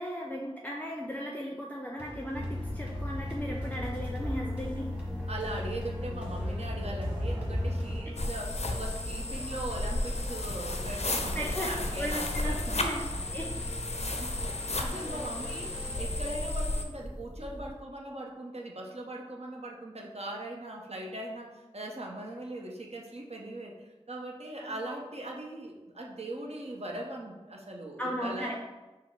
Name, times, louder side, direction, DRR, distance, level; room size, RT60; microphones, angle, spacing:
voice 1, 0.0-4.9 11.3-11.7 12.0-13.5 13.9-14.0 14.6-15.2 24.6-24.7 28.0-28.6, equal, 15° left, -2 dB, 0.5 m, -37 dB
sound 1, 2.0-17.7, equal, 10° right, 1.3 m, -42 dB
sound 2, 2.3-8.0, left 1 dB, 35° right, 0.9 m, -35 dB
voice 2, 5.3-12.8 14.1-14.3 14.8-28.6, right 1 dB, 65° right, 0 dB, 0.7 m, -40 dB
sound 3, 8.2-16.8, left 2 dB, 75° left, 0.4 m, -33 dB
4.9 x 2.0 x 4.5 m, 1.2 s
wide cardioid pair, 45°, 11 cm